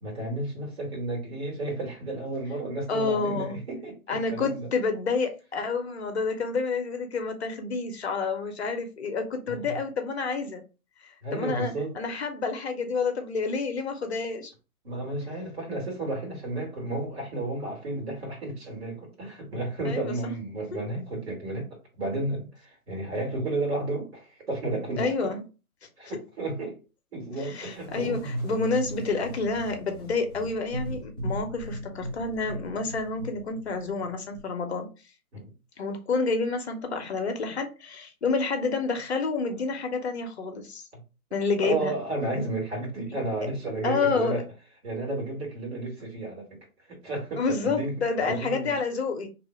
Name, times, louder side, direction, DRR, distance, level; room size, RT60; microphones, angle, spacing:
voice 1, 0.0-4.7 9.5-9.8 11.2-12.0 14.8-21.7 22.0-25.3 26.0-26.8 27.1-28.2 35.3-35.5 40.9-41.0 41.6-44.4 44.8-46.6 46.9-48.0 48.3-48.8, right 2 dB, 45° right, 1.6 m, -32 dB
voice 2, 2.9-3.6 4.1-10.6 11.0-14.5 19.8-20.3 20.7-20.8 25.0-25.4 27.4-34.9 35.8-40.9 41.3-41.9 43.8-44.4 47.4-49.3, left 4 dB, 45° left, 0.7 m, -29 dB
sound 1, 27.6-34.4, right 1 dB, 15° right, 0.8 m, -37 dB
2.7 x 2.0 x 3.0 m
hypercardioid pair, 155°, 45 cm